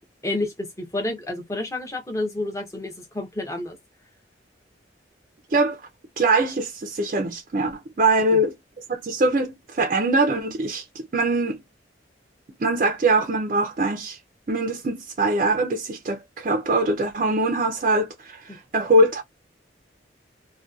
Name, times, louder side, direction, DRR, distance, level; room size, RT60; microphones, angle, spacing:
voice 1, 0.2-3.8 8.3-8.4, left 2 dB, 15° left, 0.6 m, -29 dB
voice 2, 6.2-8.5 8.9-11.6 12.6-14.2 14.5-19.2, right 2 dB, 45° right, 0.4 m, -22 dB
2.6 x 2.2 x 2.3 m
head